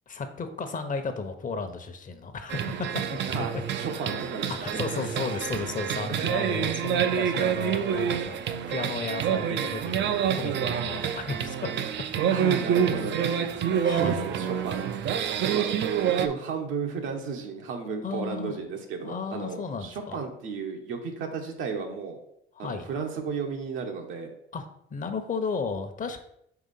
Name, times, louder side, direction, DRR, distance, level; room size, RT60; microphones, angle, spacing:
voice 1, 0.1-3.2 3.5-3.6 4.6-8.4 8.7-11.6 13.8-14.3 18.0-18.6 19.0-20.2 22.5-22.9 24.5-26.2, left 4 dB, 40° left, 8 dB, 0.8 m, -34 dB
sound 1, 2.5-16.3, right 8 dB, 65° right, 0.5 m, -27 dB
voice 2, 3.3-5.1 6.1-6.3 12.3-13.2 13.9-14.9 15.5-15.7 16.2-22.2 22.6-24.3, right 5 dB, 85° right, 3 dB, 1.1 m, -34 dB
4.8 x 3.5 x 5.5 m, 0.75 s
cardioid pair, 90°, 20 cm